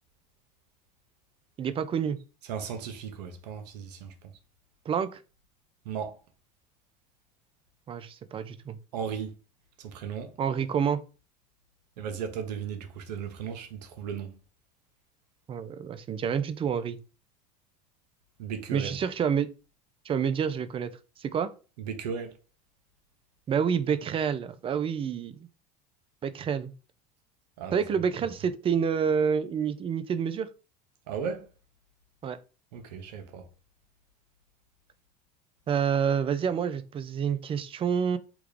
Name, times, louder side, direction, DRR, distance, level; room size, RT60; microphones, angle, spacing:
voice 1, 1.6-2.2 4.9-5.2 7.9-8.8 10.4-11.0 15.5-17.0 18.7-19.5 20.1-20.9 21.2-21.5 23.5-25.5 26.2-26.7 27.7-30.5 32.2-32.4 35.7-38.2, right 7 dB, 25° right, 0.4 m, -28 dB
voice 2, 2.5-4.3 5.8-6.2 8.9-9.3 9.8-10.3 12.0-14.4 18.4-19.0 21.8-22.4 27.6-27.8 31.1-31.5 32.7-33.5, right 7 dB, 80° right, 0.7 m, -36 dB
3.5 x 2.3 x 3.2 m
hypercardioid pair, 90°, 21 cm